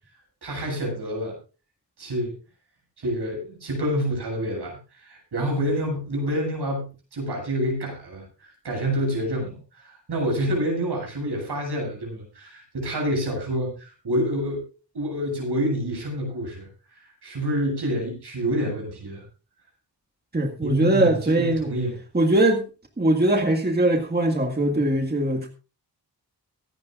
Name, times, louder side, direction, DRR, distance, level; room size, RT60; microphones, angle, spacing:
voice 1, 0.4-1.4 2.0-2.3 3.0-14.6 14.9-19.2 20.6-21.9, equal, 80° right, 0 dB, 7.6 m, -28 dB
voice 2, 20.3-21.7 22.1-22.6 23.0-25.5, right 1 dB, 25° right, 2 dB, 1.9 m, -21 dB
24.0 x 10.5 x 2.5 m, 0.33 s
wide cardioid pair, 90°, 39 cm